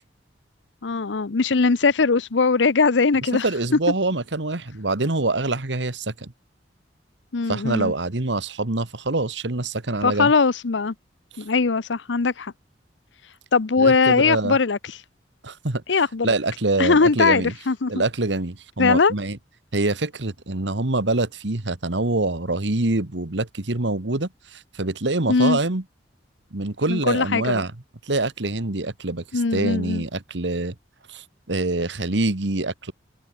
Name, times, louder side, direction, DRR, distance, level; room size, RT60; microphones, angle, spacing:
voice 1, 0.8-3.4 7.3-7.9 10.0-10.9 11.4-12.5 13.5-15.0 15.9-16.3 16.8-17.9 18.8-19.1 25.3-25.6 26.9-27.4 29.3-30.0, left 4 dB, 80° left, 0.7 m, -20 dB
voice 2, 3.4-6.3 7.5-10.3 13.8-14.6 15.4-15.8 16.2-17.5 17.9-19.4 19.7-25.8 26.5-27.7 28.1-30.7 31.1-32.9, right 2 dB, 75° right, 1.7 m, -25 dB
open air
head